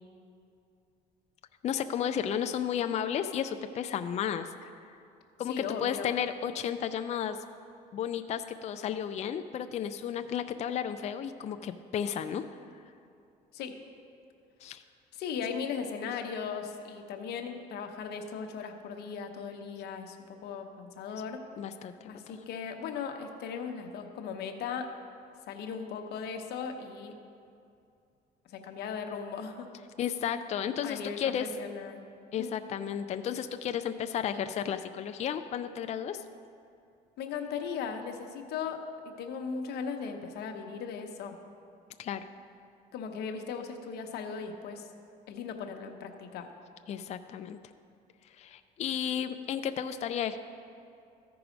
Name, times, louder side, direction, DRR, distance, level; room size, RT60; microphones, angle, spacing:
voice 1, 1.6-4.7 5.4-7.4 7.9-12.4 14.6-14.8 21.6-22.4 30.0-31.5 32.3-36.2 42.0-42.3 46.9-47.6 48.4-50.4, left 9 dB, 40° left, 9 dB, 0.4 m, -33 dB
voice 2, 5.5-6.2 13.5-13.8 15.1-20.2 20.4-21.4 22.0-24.9 25.5-27.1 28.5-29.7 30.8-32.0 32.4-32.6 37.2-41.4 42.9-44.9 45.3-46.5, left 6 dB, 75° left, 4 dB, 0.9 m, -37 dB
14.0 x 4.7 x 5.0 m, 2.5 s
cardioid pair, 110°, 17 cm